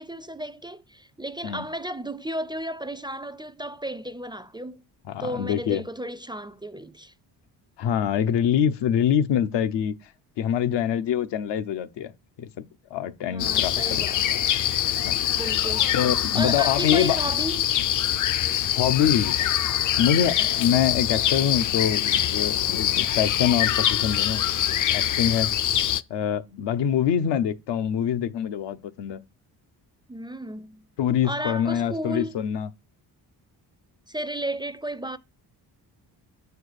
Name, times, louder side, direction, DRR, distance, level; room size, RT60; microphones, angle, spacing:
voice 1, 0.0-4.8 5.2-7.1 13.3-14.4 15.3-15.9 16.3-17.7 30.1-30.8 31.2-32.4 34.1-35.2, right 1 dB, 10° right, 0.4 m, -33 dB
voice 2, 5.1-5.8 7.8-9.9 10.4-12.1 12.4-12.6 12.9-14.0 15.0-15.2 15.9-17.2 18.8-19.4 20.0-24.4 24.9-25.5 26.1-29.2 31.0-32.7, left 9 dB, 80° left, 0.9 m, -25 dB
sound 1, 13.4-26.0, left 11 dB, 50° left, 0.5 m, -24 dB
8.5 x 4.6 x 6.5 m
cardioid pair, 85°, 41 cm